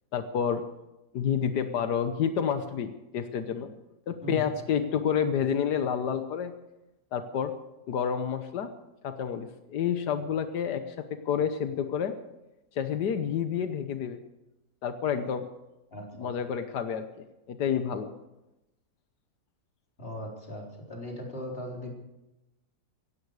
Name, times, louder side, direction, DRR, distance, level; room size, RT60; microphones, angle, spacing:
voice 1, 0.1-0.6 1.1-3.7 4.1-6.5 7.1-7.5 7.9-8.7 9.0-11.0 11.2-12.2 12.7-14.2 14.8-15.5 16.2-17.0 17.5-18.1, left 8 dB, 90° left, 8 dB, 1.6 m, -29 dB
voice 2, 4.2-4.5 15.9-16.3 20.0-22.0, equal, 35° left, -1 dB, 4.3 m, -38 dB
17.5 x 16.0 x 4.9 m, 0.94 s
omnidirectional pair, 1.7 m